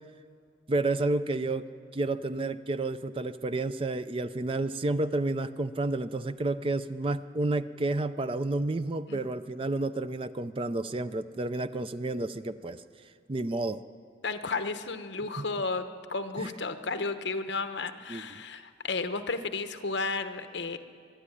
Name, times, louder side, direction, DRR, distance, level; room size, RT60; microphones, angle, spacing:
voice 1, 0.7-1.7 1.9-12.8 13.3-13.8 15.4-15.5 16.4-16.5 18.1-18.4, right 2 dB, 30° right, 12 dB, 0.4 m, -30 dB
voice 2, 14.2-20.8, left 3 dB, 70° left, 9 dB, 1.0 m, -33 dB
22.5 x 11.5 x 9.9 m, 2.3 s
head